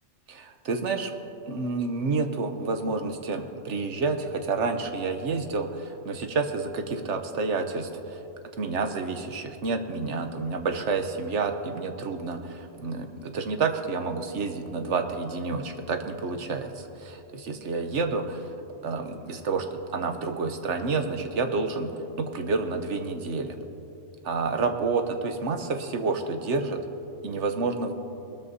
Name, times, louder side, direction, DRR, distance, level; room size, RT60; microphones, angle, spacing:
voice 1, 0.3-1.1 1.5-8.2 8.6-18.5 18.8-21.9 22.2-23.5 24.2-26.8 27.2-27.9, right 4 dB, 70° right, 6 dB, 1.2 m, -29 dB
21.0 x 13.5 x 2.7 m, 2.9 s
omnidirectional pair, 1.3 m